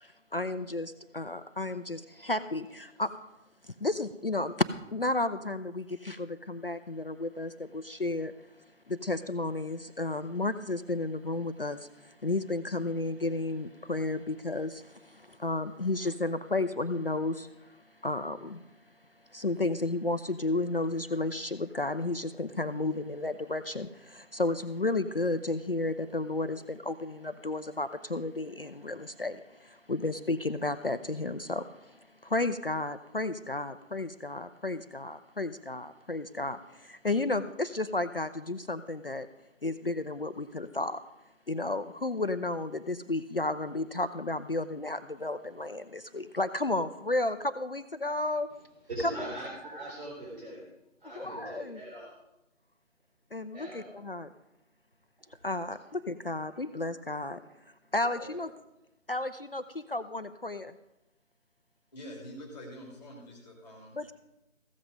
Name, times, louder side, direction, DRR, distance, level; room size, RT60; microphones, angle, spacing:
voice 1, 0.0-3.1 3.6-4.5 4.9-8.3 8.9-18.6 19.3-39.3 39.6-41.0 41.5-48.5 51.1-51.8 53.3-54.3 55.4-57.4 57.9-58.5 59.1-60.8 64.0-64.1, left 2 dB, 45° left, 10 dB, 0.5 m, -33 dB
voice 2, 48.9-50.6 51.0-52.1 53.5-54.0 58.1-58.3, right 1 dB, 40° right, -5 dB, 4.2 m, -40 dB
voice 3, 61.9-64.0, equal, 5° left, -1 dB, 2.1 m, -45 dB
15.0 x 7.9 x 5.1 m, 0.91 s
figure-of-eight pair, 165°, 39 cm